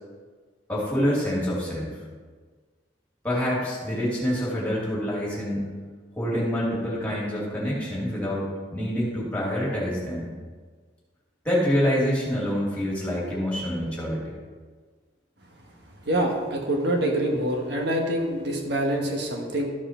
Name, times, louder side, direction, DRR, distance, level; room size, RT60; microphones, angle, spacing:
voice 1, 0.7-2.0 3.2-5.7 6.2-10.3 11.4-14.3, equal, 10° left, -6 dB, 2.5 m, -26 dB
voice 2, 16.0-19.7, right 1 dB, 65° right, 1 dB, 1.4 m, -25 dB
13.5 x 4.8 x 4.4 m, 1.5 s
head